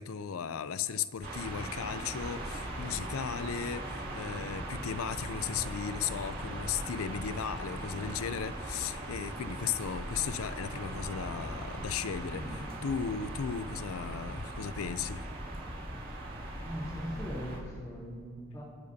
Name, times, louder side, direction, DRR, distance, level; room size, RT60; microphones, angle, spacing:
voice 1, 0.0-12.4 12.8-15.2, left 7 dB, 75° left, 14 dB, 0.5 m, -36 dB
sound 1, 1.2-17.6, right 1 dB, 40° right, 2.4 m, -39 dB
voice 2, 12.2-12.6 16.6-18.6, equal, 15° left, -5 dB, 3.5 m, -40 dB
25.5 x 10.0 x 2.8 m, 2.1 s
head